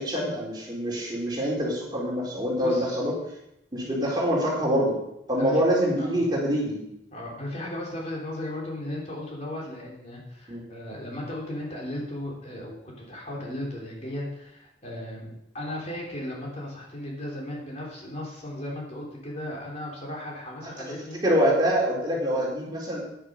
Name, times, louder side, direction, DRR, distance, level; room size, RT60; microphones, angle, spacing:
voice 1, 0.0-3.1 3.7-4.9 5.3-6.8 10.5-10.6 20.8-20.9 21.2-23.0, equal, 25° right, -4 dB, 3.8 m, -25 dB
voice 2, 2.5-3.0 5.4-5.6 6.0-6.2 7.1-21.2 22.1-22.2, left 1 dB, 40° left, -3 dB, 3.7 m, -36 dB
10.0 x 9.9 x 5.4 m, 0.82 s
head